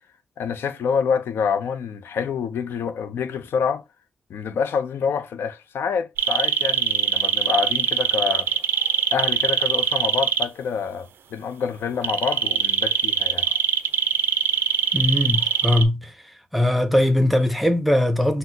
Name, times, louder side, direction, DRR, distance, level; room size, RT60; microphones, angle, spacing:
voice 1, 0.4-3.8 4.3-8.6 9.1-13.6, left 6 dB, 90° left, 0.4 m, -27 dB
sound 1, 6.2-10.4 12.0-15.8, right 8 dB, 80° right, 0.3 m, -21 dB
voice 2, 14.9-16.1 16.5-18.4, left 1 dB, ahead, 0.4 m, -20 dB
4.0 x 2.0 x 2.6 m
wide cardioid pair, 140°, 4 cm